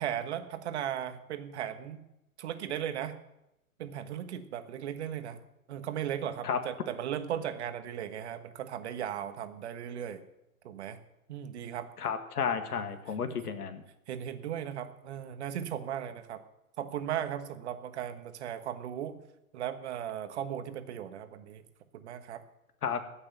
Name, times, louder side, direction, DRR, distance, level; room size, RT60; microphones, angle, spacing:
voice 1, 0.0-2.0 2.4-3.2 3.8-5.4 5.7-10.2 10.6-11.0 11.3-11.9 14.1-16.4 16.8-19.2 19.5-21.6 21.9-22.4, right 10 dB, 45° right, 9 dB, 1.4 m, -37 dB
voice 2, 12.0-13.8 22.8-23.0, left 6 dB, 75° left, 8 dB, 2.0 m, -32 dB
15.0 x 6.7 x 9.1 m, 0.88 s
hypercardioid pair, 145°, 45 cm